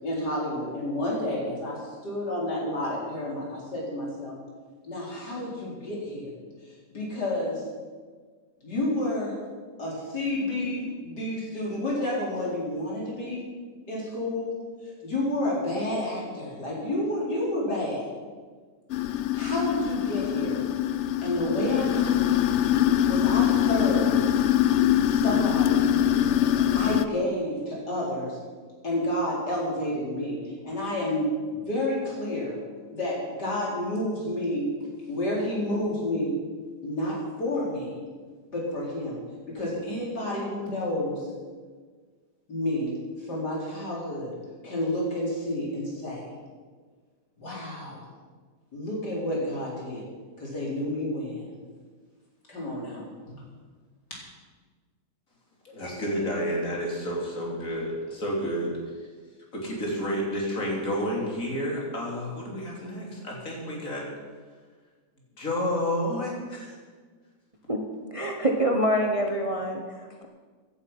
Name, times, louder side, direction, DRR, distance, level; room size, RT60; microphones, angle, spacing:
voice 1, 0.0-4.3 4.9-6.3 6.9-7.6 8.6-9.3 9.8-13.5 13.9-14.5 15.0-18.1 19.3-20.6 21.2-22.5 23.0-24.2 25.0-25.9 26.7-28.4 28.8-32.6 32.9-34.7 35.1-36.3 36.8-38.0 38.5-39.2 39.5-41.3 42.5-43.0 43.2-44.4 44.6-46.2 47.4-48.0 48.7-50.0 50.4-51.4 52.5-53.4, left 1 dB, 75° left, -4 dB, 4.7 m, -30 dB
sound 1, 18.9-27.0, left 11 dB, 90° left, 0.6 m, -23 dB
voice 2, 55.7-58.7 59.5-64.0 65.4-66.8, equal, 50° left, -2 dB, 3.7 m, -30 dB
voice 3, 68.1-70.3, equal, 25° right, 2 dB, 1.0 m, -26 dB
16.0 x 11.0 x 5.6 m, 1.5 s
omnidirectional pair, 1.8 m